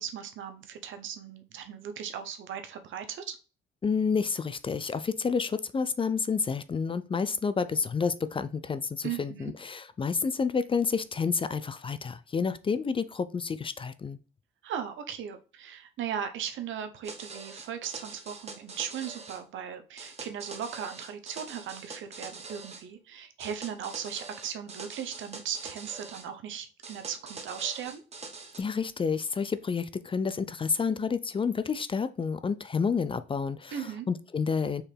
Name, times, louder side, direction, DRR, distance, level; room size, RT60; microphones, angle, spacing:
voice 1, 0.0-3.4 9.0-9.5 14.6-28.0 33.7-34.1, right 8 dB, 75° right, 0.8 m, -37 dB
voice 2, 3.8-14.2 28.6-34.8, left 5 dB, 25° left, 0.4 m, -29 dB
sound 1, 17.0-19.4 20.0-22.8 23.4-26.3 26.8-28.6, right 4 dB, 35° right, 1.1 m, -44 dB
4.5 x 3.3 x 3.3 m
cardioid pair, 90°, 20 cm